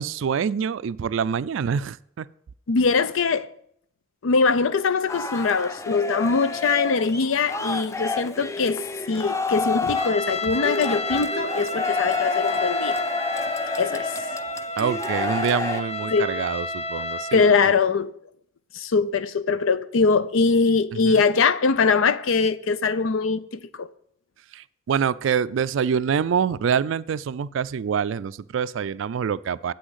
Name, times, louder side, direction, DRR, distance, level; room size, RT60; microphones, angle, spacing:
voice 1, 0.0-2.3 14.8-17.7 20.9-21.3 24.5-29.7, right 7 dB, 70° right, 0.3 m, -26 dB
voice 2, 2.7-3.5 4.2-8.8 9.1-13.0 13.8-14.1 16.1-16.3 17.3-18.1 18.7-23.9, left 4 dB, 80° left, 0.5 m, -22 dB
sound 1, 5.1-15.8, left 4 dB, 15° left, 0.3 m, -29 dB
Trumpet, 9.9-17.6, left 1 dB, 30° left, 0.7 m, -31 dB
8.1 x 6.3 x 8.1 m
head